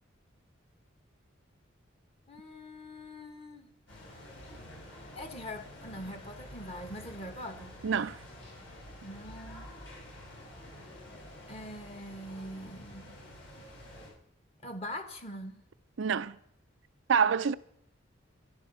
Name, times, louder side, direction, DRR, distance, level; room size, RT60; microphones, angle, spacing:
voice 1, 2.3-3.7 5.1-7.8 9.0-9.7 11.5-13.2 14.6-15.6, left 1 dB, 30° left, 1.4 m, -43 dB
sound 1, 3.9-14.1, left 1 dB, 70° left, 6.5 m, -49 dB
voice 2, 7.8-8.2 16.0-16.4 17.1-17.5, right 6 dB, 70° right, 0.5 m, -26 dB
12.0 x 11.5 x 5.6 m
head